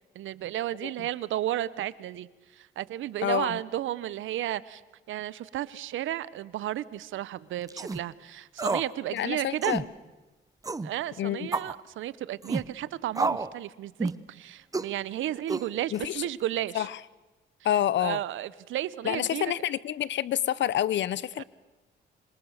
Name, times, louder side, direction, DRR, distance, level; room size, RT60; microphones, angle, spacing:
voice 1, 0.1-4.8 5.1-9.7 10.8-16.9 18.0-19.5 21.4-21.5, right 13 dB, 80° right, 18 dB, 0.9 m, -33 dB
voice 2, 3.2-3.6 9.1-9.9 11.2-11.5 15.9-16.3 16.7-17.0 17.6-18.2 19.0-21.4, left 11 dB, 65° left, 20 dB, 0.8 m, -28 dB
sound 1, 7.7-8.0 8.6-8.9 9.2-9.3 9.6-9.9 10.6-10.9 11.5-11.8 12.4-12.7 13.1-13.5 14.0-14.2 14.7-14.9 15.5-16.0, right 3 dB, 15° right, 0.9 m, -30 dB
26.5 x 25.0 x 6.5 m, 1.2 s
cardioid pair, 90°, 20 cm